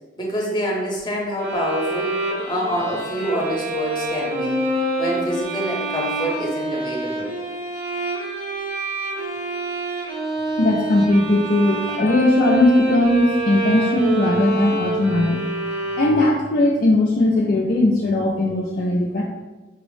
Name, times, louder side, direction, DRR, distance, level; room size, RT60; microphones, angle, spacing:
voice 1, 0.2-2.1 2.4-4.6 5.0-7.3, equal, 25° left, -3 dB, 0.7 m, -26 dB
sound 1, 1.4-16.5, right 1 dB, 55° right, 0.8 m, -26 dB
voice 2, 10.6-15.4 16.0-19.2, left 1 dB, 50° left, -2 dB, 0.3 m, -18 dB
4.5 x 2.0 x 3.0 m, 1.2 s
head